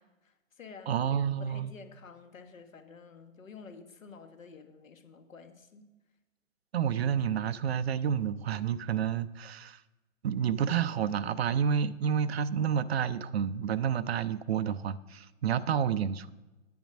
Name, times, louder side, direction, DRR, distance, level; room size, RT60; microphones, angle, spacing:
voice 1, 0.0-1.0 1.4-5.9, left 5 dB, 75° left, 7 dB, 1.5 m, -50 dB
voice 2, 0.9-1.7 6.7-9.8 10.2-16.3, right 8 dB, 50° right, 14 dB, 0.6 m, -29 dB
10.0 x 9.5 x 5.4 m, 1.1 s
figure-of-eight pair, 125°, 40 cm